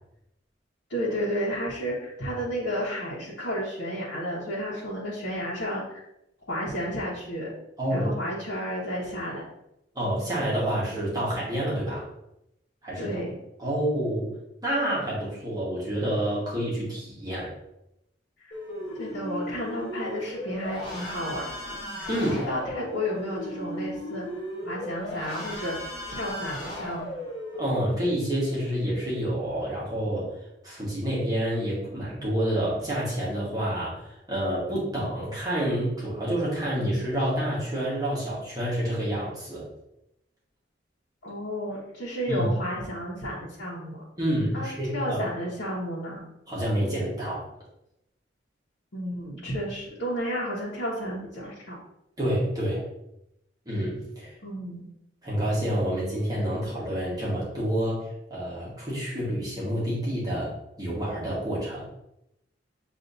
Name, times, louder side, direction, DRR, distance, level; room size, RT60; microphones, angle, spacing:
voice 1, 0.9-6.0 6.5-7.5 7.9-9.4 13.0-13.4 19.0-21.5 22.0-24.3 24.7-25.8 26.1-27.1 41.2-44.0 44.5-46.2 48.9-51.8 54.4-54.9, equal, 85° left, -7 dB, 1.1 m, -32 dB
voice 2, 7.8-8.1 9.9-12.1 12.8-13.2 13.6-14.3 14.6-17.5 22.1-22.4 27.5-30.3 30.6-39.7 42.3-42.5 44.2-45.2 46.5-47.5 52.2-52.8 53.6-54.3 55.2-61.8, equal, 20° right, -7 dB, 1.4 m, -28 dB
sound 1, 18.5-27.7, left 1 dB, 25° left, 1.6 m, -36 dB
6.7 x 2.7 x 2.6 m, 0.83 s
head